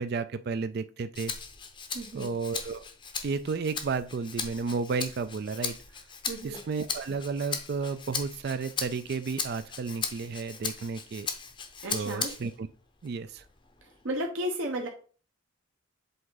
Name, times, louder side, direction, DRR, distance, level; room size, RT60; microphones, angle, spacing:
voice 1, 0.0-1.3 2.1-2.8 3.2-5.8 6.4-11.3 11.9-12.7 13.0-13.4, right 4 dB, 50° right, 12 dB, 0.3 m, -32 dB
Rattle (instrument), 1.1-12.6 13.0-14.2, left 5 dB, 25° left, 0.6 m, -38 dB
voice 2, 1.9-2.3 6.3-6.6 11.8-12.3 14.0-14.9, right 1 dB, 65° right, 1 dB, 0.9 m, -33 dB
7.7 x 3.6 x 3.9 m, 0.40 s
head